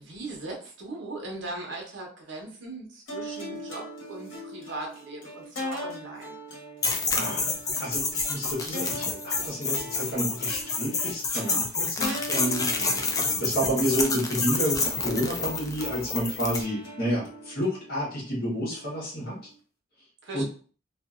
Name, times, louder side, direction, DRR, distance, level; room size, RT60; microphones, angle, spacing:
voice 1, 0.0-6.4 12.8-13.1 20.2-20.4, right 2 dB, 70° right, 0 dB, 0.9 m, -39 dB
sound 1, 3.1-19.5, equal, 75° left, 1.1 m, -41 dB
sound 2, 6.8-16.6, left 3 dB, 20° left, 0.4 m, -28 dB
voice 2, 7.1-7.5 7.8-13.0 13.4-19.4 20.3-20.4, equal, 55° left, -5 dB, 1.2 m, -30 dB
2.7 x 2.5 x 2.4 m, 0.42 s
head